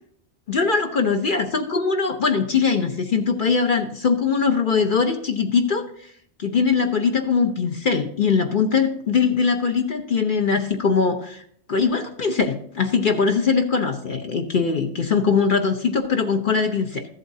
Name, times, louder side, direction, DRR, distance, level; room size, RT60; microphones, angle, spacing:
voice 1, 0.5-6.1 6.4-11.4 11.7-17.1, left 5 dB, 50° left, 5 dB, 0.9 m, -21 dB
14.0 x 7.9 x 2.8 m, 0.63 s
omnidirectional pair, 1.2 m